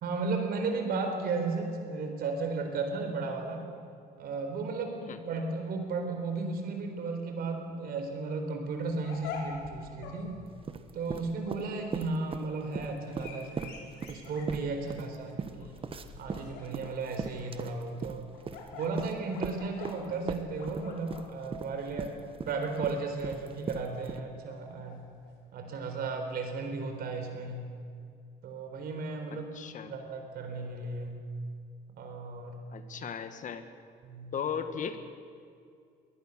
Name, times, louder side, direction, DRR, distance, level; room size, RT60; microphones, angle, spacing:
voice 1, 0.0-3.6 4.2-10.3 10.9-13.8 14.1-15.8 16.2-18.2 18.7-22.2 22.5-25.1 25.5-27.7 28.4-29.5 29.9-31.2 32.0-32.6 34.0-34.3, right 3 dB, 65° right, 4 dB, 4.0 m, -34 dB
sound 1, 8.7-25.3, left 4 dB, 85° left, 4.6 m, -48 dB
sound 2, 10.5-12.5 12.7-20.0 20.3-24.2, right 5 dB, 35° right, 1.2 m, -38 dB
voice 2, 29.3-29.9 32.7-33.7 34.3-35.0, left 7 dB, 50° left, 9 dB, 1.6 m, -36 dB
22.5 x 18.5 x 6.7 m, 2.3 s
cardioid pair, 110°, 17 cm